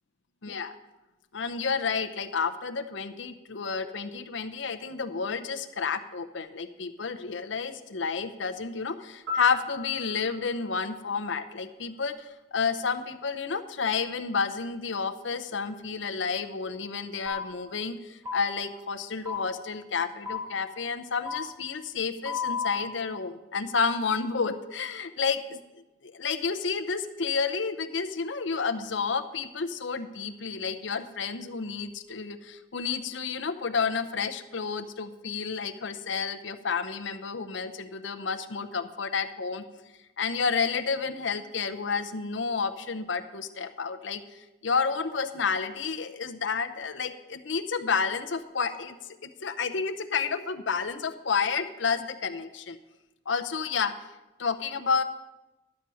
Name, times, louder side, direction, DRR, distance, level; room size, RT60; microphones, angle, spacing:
voice 1, 0.4-0.7 1.3-25.6 26.0-39.6 40.2-49.0 49.2-52.8 53.3-53.9 54.4-55.0, left 5 dB, 70° left, 9 dB, 0.7 m, -30 dB
Piano, 9.3-12.2 20.3-20.5, left 4 dB, 85° right, 3.1 m, -40 dB
sound 1, 17.3-17.4 18.2-18.4 19.2-19.4 20.2-20.4 21.2-21.4 22.2-22.8, left 6 dB, 15° right, 3.0 m, -31 dB
12.0 x 7.7 x 5.6 m, 1.1 s
head